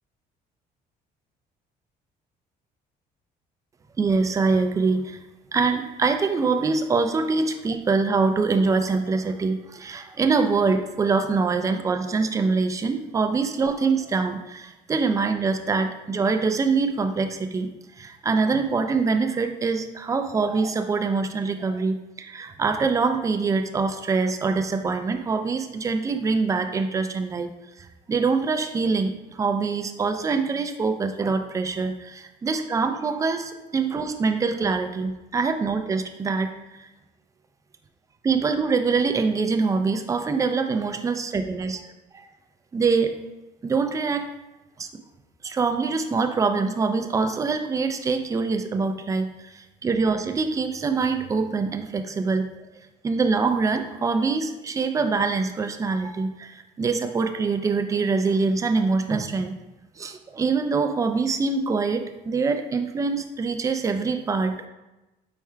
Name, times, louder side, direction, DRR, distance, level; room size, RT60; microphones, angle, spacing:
voice 1, 4.0-5.2 5.5-17.7 18.0-27.5 28.1-36.5 38.2-41.8 42.1-42.2 42.7-43.1 43.6-44.3 44.8-44.9 45.4-49.3 49.5-52.7 53.0-59.6 60.0-64.7, right 4 dB, 20° right, 7 dB, 0.3 m, -24 dB
4.6 x 4.4 x 2.3 m, 1.0 s
cardioid pair, 110°, 17 cm